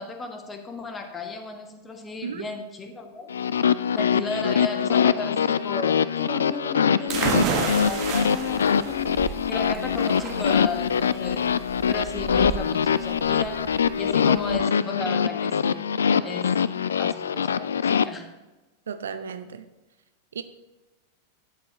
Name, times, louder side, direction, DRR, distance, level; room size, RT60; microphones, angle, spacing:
voice 1, 0.0-3.3 3.9-11.5 11.9-15.8 16.2-16.6 17.0-18.3, left 3 dB, 20° left, 1.4 m, -34 dB
sound 1, 3.3-18.1, left 7 dB, 70° left, 0.3 m, -23 dB
sound 2, 7.1-14.6, right 6 dB, 40° right, 1.4 m, -31 dB
voice 2, 18.9-19.6 20.3-20.4, right 6 dB, 65° right, 0.6 m, -34 dB
12.0 x 9.0 x 2.9 m
figure-of-eight pair, 90°, 0 cm